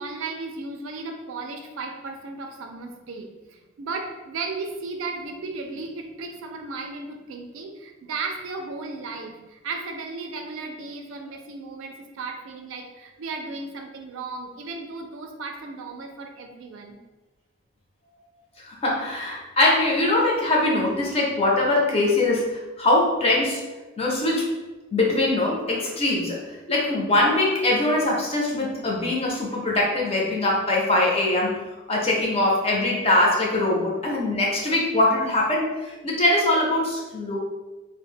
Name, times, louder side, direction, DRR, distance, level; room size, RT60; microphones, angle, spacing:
voice 1, 0.0-17.0, right 3 dB, 70° right, 4 dB, 0.4 m, -35 dB
voice 2, 18.6-23.6 24.0-24.5 24.9-26.4 26.7-31.5 31.9-37.4, left 2 dB, 30° left, -3 dB, 0.5 m, -22 dB
2.1 x 2.0 x 3.6 m, 1.2 s
head